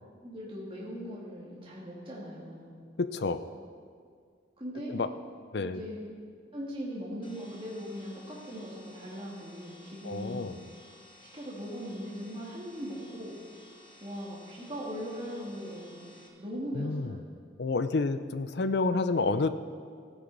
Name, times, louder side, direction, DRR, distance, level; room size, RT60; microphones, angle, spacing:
voice 1, 0.2-2.7 4.6-5.0 5.6-6.0 6.5-10.4 11.3-13.4 14.0-16.1 16.4-17.2, equal, 30° right, -5 dB, 2.0 m, -39 dB
voice 2, 3.0-3.4 4.9-5.1 5.5-5.8 10.0-10.5 16.7-17.2 17.6-19.5, left 3 dB, 60° left, 12 dB, 0.5 m, -29 dB
sound 1, 7.2-16.3, left 1 dB, 25° left, 1.3 m, -56 dB
16.0 x 9.4 x 4.0 m, 2.1 s
head